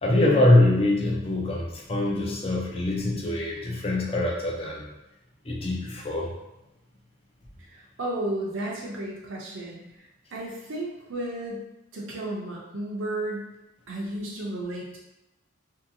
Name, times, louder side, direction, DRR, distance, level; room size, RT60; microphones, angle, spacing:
voice 1, 0.0-4.9 5.5-6.3, left 1 dB, 25° left, -1 dB, 0.4 m, -23 dB
voice 2, 7.6-11.6 11.9-13.5 13.9-15.0, right 1 dB, 65° right, -3 dB, 0.5 m, -33 dB
2.8 x 2.7 x 2.6 m, 0.95 s
head